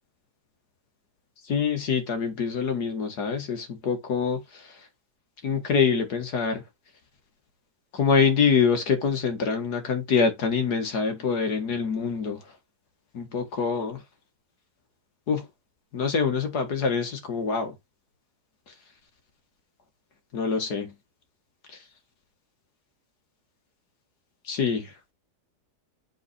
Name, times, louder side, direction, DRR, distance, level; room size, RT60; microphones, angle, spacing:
voice 1, 1.4-4.8 5.4-6.6 7.9-12.4 13.1-14.0 15.3-15.5 15.9-17.7 20.3-20.9 21.7-21.8 24.5-24.9, left 5 dB, 80° left, 2.2 m, -25 dB
7.6 x 4.1 x 4.3 m
omnidirectional pair, 1.7 m